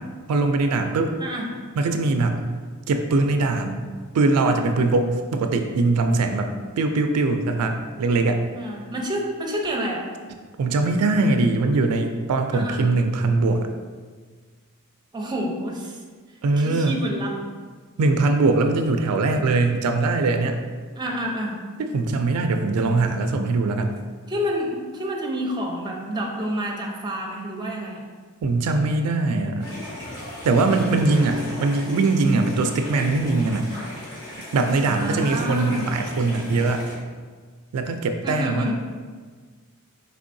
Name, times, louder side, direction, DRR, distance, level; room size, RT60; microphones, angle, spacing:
voice 1, 0.3-1.1 1.8-2.4 2.9-3.9 4.1-6.5 6.8-8.4 10.6-13.7 16.4-16.9 18.0-20.6 21.8-23.9 28.4-29.7 30.4-33.7 34.5-36.9 37.7-38.7, right 3 dB, 85° right, 6 dB, 0.3 m, -21 dB
voice 2, 8.5-10.0 12.5-12.8 15.1-16.0 16.6-17.4 20.9-21.6 24.3-28.0 34.9-35.9 38.2-38.7, equal, 20° right, -1 dB, 0.6 m, -28 dB
sound 1, 29.6-37.0, left 1 dB, 20° left, 1.5 m, -37 dB
4.5 x 3.3 x 2.6 m, 1.5 s
head